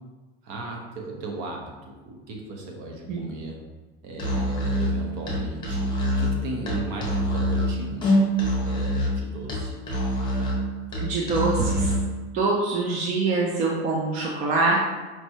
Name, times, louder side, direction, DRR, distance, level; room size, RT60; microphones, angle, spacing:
voice 1, 0.4-3.6 4.0-8.1 8.6-9.7, right 2 dB, 50° right, 1 dB, 0.8 m, -36 dB
Musical instrument, 4.1-12.1, equal, 15° left, 0.8 m, -25 dB
voice 2, 11.0-11.9 12.3-14.8, right 3 dB, 25° right, -2 dB, 0.3 m, -24 dB
4.5 x 3.0 x 2.7 m, 1.2 s
supercardioid pair, 160°, 31 cm